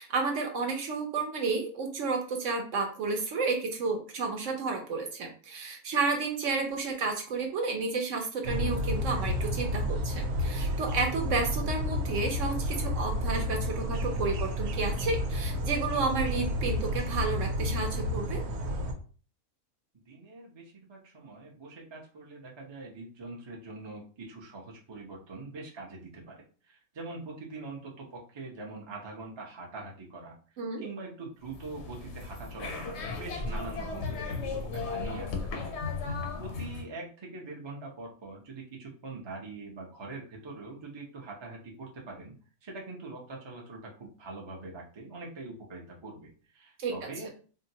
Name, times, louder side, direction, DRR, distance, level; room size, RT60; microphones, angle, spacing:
voice 1, 0.0-18.4 30.6-30.9 46.8-47.1, right 4 dB, 65° right, 3 dB, 0.9 m, -31 dB
sound 1, 8.4-18.9, left 1 dB, 85° right, 1.1 m, -31 dB
voice 2, 20.1-30.3 30.8-35.7 36.0-42.3 42.6-47.3, right 3 dB, 35° right, -2 dB, 0.4 m, -43 dB
sound 2, 31.4-36.9, left 4 dB, 65° left, 0.7 m, -35 dB
3.7 x 2.1 x 2.7 m, 0.39 s
omnidirectional pair, 1.6 m